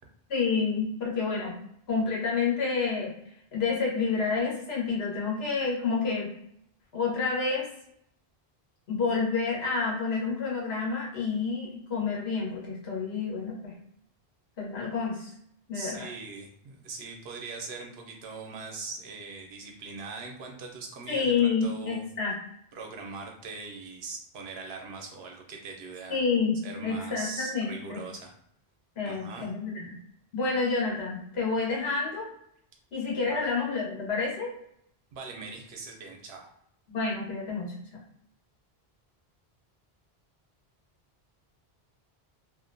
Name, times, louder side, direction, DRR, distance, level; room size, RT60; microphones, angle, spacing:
voice 1, 0.3-1.6 1.9-3.1 3.5-6.3 6.9-7.7 8.9-13.7 14.6-15.3 15.7-16.1 21.1-22.3 26.1-28.0 29.0-29.9 30.3-32.3 32.9-34.5 36.9-37.7, left 4 dB, 80° left, -3 dB, 1.0 m, -29 dB
voice 2, 15.7-22.1 22.7-26.2 26.6-28.3 29.0-29.5 33.3-33.5 35.1-36.5, right 4 dB, 85° right, 2 dB, 0.8 m, -41 dB
2.5 x 2.1 x 2.5 m, 0.72 s
omnidirectional pair, 1.0 m